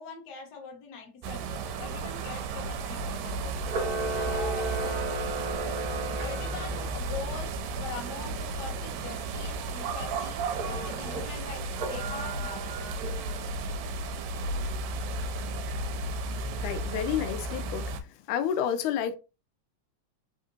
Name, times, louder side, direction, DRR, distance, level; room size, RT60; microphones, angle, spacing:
voice 1, 0.0-3.7 4.1-5.3 6.2-10.4 10.8-12.7, left 5 dB, 55° left, 1.2 m, -42 dB
sound 1, 1.2-18.0, right 3 dB, 85° right, 1.9 m, -34 dB
Camera, 3.6-6.9 10.5-11.2 11.7-13.6, right 3 dB, 65° right, 0.9 m, -35 dB
voice 2, 16.6-17.9 18.3-19.2, left 9 dB, 85° left, 2.0 m, -29 dB
4.2 x 3.6 x 2.7 m
omnidirectional pair, 3.4 m